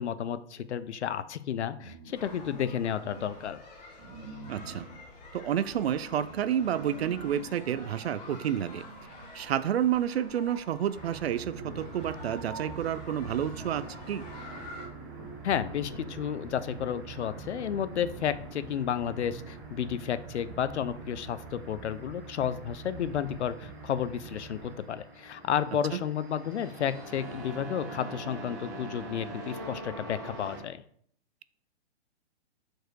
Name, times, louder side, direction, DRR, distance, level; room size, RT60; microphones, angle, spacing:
voice 1, 0.0-3.6 15.4-30.8, left 9 dB, 80° left, 14 dB, 0.6 m, -32 dB
sound 1, 1.7-3.5 4.0-9.6 10.6-10.7 10.9-19.8, right 3 dB, 35° right, 2.1 m, -48 dB
sound 2, 2.1-14.9, left 1 dB, 35° left, 1.5 m, -48 dB
voice 2, 4.5-4.8 5.3-8.8 9.3-14.2, right 10 dB, 65° right, 16 dB, 0.5 m, -30 dB
sound 3, 10.9-30.6, right 3 dB, 15° right, 0.6 m, -44 dB
4.7 x 4.5 x 4.6 m, 0.63 s
hypercardioid pair, 175°, 34 cm